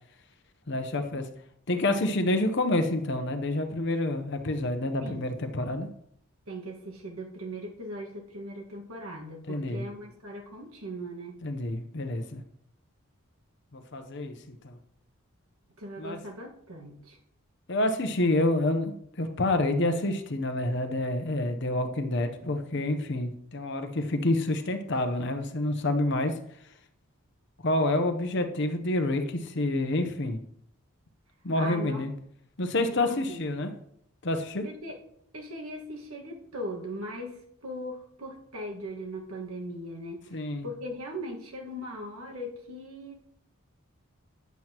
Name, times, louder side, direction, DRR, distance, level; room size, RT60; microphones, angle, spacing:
voice 1, 0.7-1.3 1.7-5.9 9.5-9.9 11.4-12.4 13.7-14.4 14.6-14.8 16.0-16.2 17.7-26.3 27.6-30.4 31.4-32.1 32.6-33.7 34.2-34.6 40.3-40.7, left 2 dB, 55° left, 7 dB, 0.8 m, -28 dB
voice 2, 6.5-11.4 15.8-17.2 31.6-32.0 32.8-33.4 34.6-35.0 35.3-40.3 40.6-43.3, equal, 80° right, 1 dB, 1.6 m, -39 dB
9.2 x 7.7 x 2.9 m, 0.68 s
head